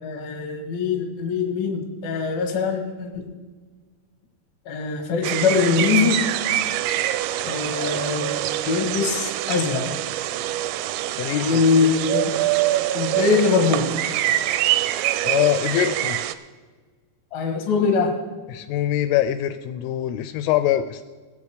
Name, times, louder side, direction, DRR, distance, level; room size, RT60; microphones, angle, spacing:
voice 1, 0.0-3.3 4.7-6.2 7.4-8.4 8.7-9.9 11.3-12.3 12.9-13.9 17.3-18.1, left 5 dB, 60° left, 4 dB, 2.8 m, -22 dB
sound 1, 5.2-16.4, right 14 dB, 85° right, 3.1 m, -25 dB
voice 2, 11.1-11.6 15.2-16.2 18.5-21.0, left 12 dB, 85° left, 9 dB, 3.0 m, -23 dB
19.5 x 7.0 x 4.9 m, 1.4 s
omnidirectional pair, 5.7 m